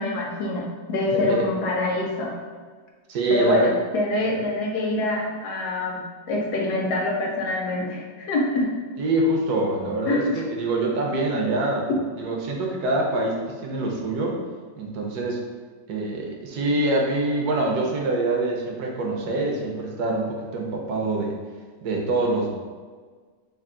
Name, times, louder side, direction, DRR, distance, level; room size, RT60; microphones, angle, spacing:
voice 1, 0.0-2.3 3.3-6.0 6.3-8.7 10.1-10.4, left 2 dB, 70° left, 0 dB, 1.0 m, -25 dB
voice 2, 1.1-1.4 3.1-3.7 9.0-14.4 14.8-15.4 15.9-21.4 21.8-22.5, right 2 dB, 70° right, 0 dB, 1.0 m, -25 dB
3.5 x 2.5 x 3.6 m, 1.5 s
omnidirectional pair, 1.9 m